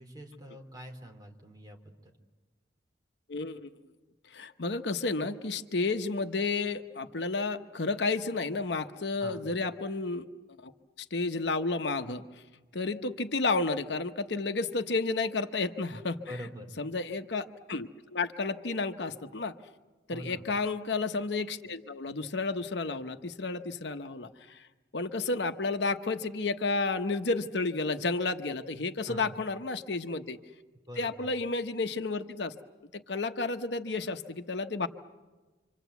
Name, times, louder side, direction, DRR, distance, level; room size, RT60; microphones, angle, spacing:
voice 1, 0.0-2.1 9.2-9.5 16.2-16.7 20.1-20.5 29.0-29.4 30.9-31.3, equal, 20° right, 2 dB, 3.2 m, -44 dB
voice 2, 3.3-3.7 4.3-10.3 10.6-10.7 11.0-12.2 12.7-16.2 16.8-19.5 20.1-24.7 24.9-30.4 31.0-32.5 32.9-34.9, left 3 dB, 70° left, 8 dB, 1.0 m, -31 dB
27.5 x 25.5 x 8.2 m, 1.2 s
head